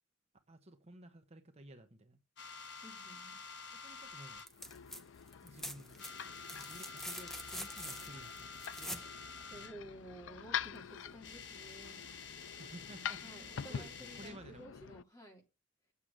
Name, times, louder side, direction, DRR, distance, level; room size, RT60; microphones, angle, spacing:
voice 1, 0.5-2.2 3.7-4.4 5.4-6.1 6.5-9.0 12.6-14.6, right 1 dB, 35° right, 1.0 m, -54 dB
sound 1, 2.4-4.5 5.2-5.6 5.9-9.8 10.8-10.9 11.1-14.4, left 5 dB, 65° left, 1.5 m, -49 dB
voice 2, 2.8-3.4 9.5-12.1 13.2-15.4, equal, 20° left, 3.0 m, -53 dB
sound 2, 4.4-5.0 5.3-9.1 10.8-10.9, equal, ahead, 0.8 m, -45 dB
sound 3, 4.5-15.0, left 8 dB, 80° left, 0.5 m, -46 dB
8.4 x 6.6 x 7.5 m
head